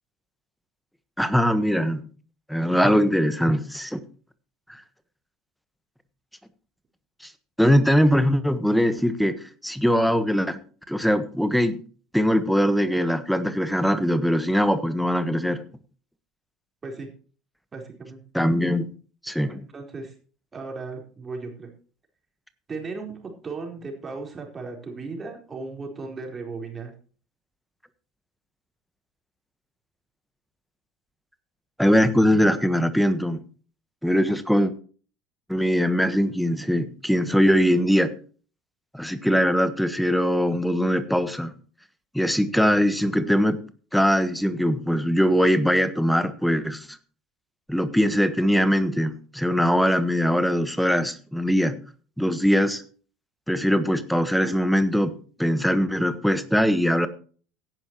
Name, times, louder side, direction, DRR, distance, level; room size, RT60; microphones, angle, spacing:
voice 1, 1.2-2.0 2.5-4.0 4.7-4.8 7.6-10.6 10.9-11.8 12.1-15.6 18.3-18.9 19.2-19.5 31.8-33.4 34.0-34.7 35.5-38.1 38.9-41.5 42.1-43.6 43.9-47.0 47.7-51.7 52.2-52.8 53.5-57.1, equal, ahead, 12 dB, 1.4 m, -21 dB
voice 2, 17.7-18.2 19.4-20.1 20.5-21.7 22.7-26.9, right 3 dB, 25° right, 1 dB, 4.4 m, -36 dB
16.5 x 10.5 x 3.1 m, 0.41 s
figure-of-eight pair, 70°, 0 cm